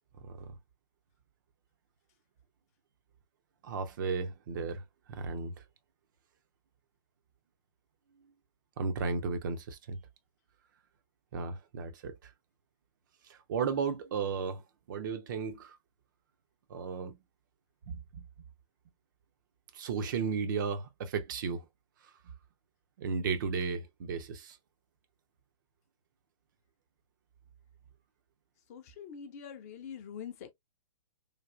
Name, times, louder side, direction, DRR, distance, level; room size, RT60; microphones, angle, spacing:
voice 1, 3.6-4.8 5.1-5.5 8.8-10.0 11.3-12.3 13.3-14.6 14.9-15.8 16.7-17.2 17.9-18.2 19.7-21.7 23.0-24.6, right 5 dB, 35° right, 0.4 m, -34 dB
voice 2, 28.7-30.5, left 7 dB, 25° left, 0.4 m, -44 dB
3.2 x 2.3 x 2.3 m
figure-of-eight pair, 120°, 18 cm